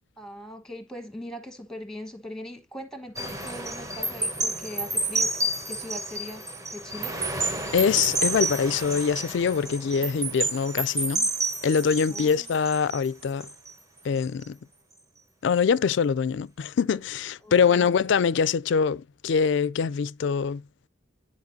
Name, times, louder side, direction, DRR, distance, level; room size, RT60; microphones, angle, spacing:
voice 1, 0.2-6.4 6.7-7.2 12.1-12.5 17.4-17.9, left 1 dB, 5° left, 1.2 m, -40 dB
sound 1, 3.2-13.7 14.2-14.4, right 2 dB, 15° right, 1.2 m, -30 dB
voice 2, 7.7-11.3 11.6-13.5 14.0-14.6 15.4-20.6, left 6 dB, 60° left, 0.3 m, -24 dB
10.5 x 4.4 x 2.7 m
head